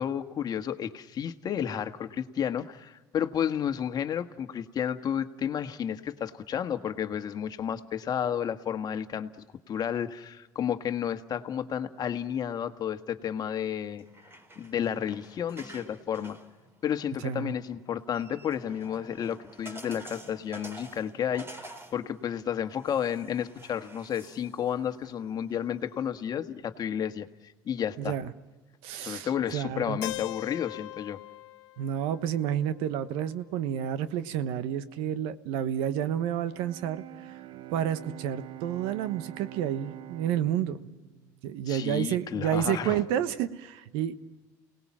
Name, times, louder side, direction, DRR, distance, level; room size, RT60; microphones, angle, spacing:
voice 1, 0.0-9.3 9.7-14.0 14.6-16.4 16.8-27.3 27.6-28.2 29.0-31.2 41.7-43.0, left 9 dB, 45° left, 7 dB, 1.6 m, -32 dB
sound 1, 13.9-26.1, right 1 dB, 25° right, 3.9 m, -50 dB
voice 2, 28.0-28.3 28.8-30.0 31.8-37.0 37.7-40.8 41.4-44.1, right 10 dB, 75° right, 13 dB, 1.2 m, -30 dB
Keyboard (musical), 30.0-33.9, left 20 dB, 85° left, 0.8 m, -42 dB
Bowed string instrument, 36.5-42.5, right 13 dB, 60° right, 0.7 m, -46 dB
29.0 x 19.0 x 7.4 m, 1.2 s
supercardioid pair, 80°, 9 cm